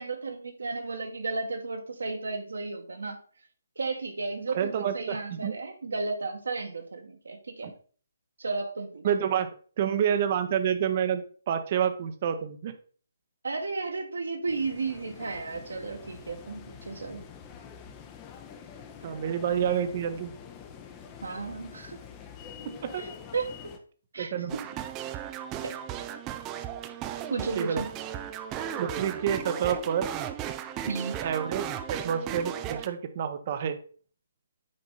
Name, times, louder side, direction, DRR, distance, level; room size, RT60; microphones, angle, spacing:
voice 1, 0.0-3.2 3.7-7.7 8.4-9.0 13.4-17.2 21.2-22.0 23.0-23.5 24.1-24.6 25.6-25.8 27.3-27.9 30.9-31.1, right 3 dB, 65° right, 4 dB, 1.7 m, -33 dB
voice 2, 4.5-5.5 7.6-7.7 9.0-9.5 9.8-12.7 19.0-20.3 22.8-23.0 24.2-24.5 27.5-27.8 28.8-30.1 31.2-33.8, right 8 dB, 35° right, 9 dB, 1.0 m, -28 dB
sound 1, 14.5-23.8, left 7 dB, 20° left, 0.9 m, -46 dB
sound 2, 24.5-32.9, right 10 dB, 20° right, 0.5 m, -36 dB
8.8 x 5.1 x 4.0 m, 0.43 s
figure-of-eight pair, 140°, 0 cm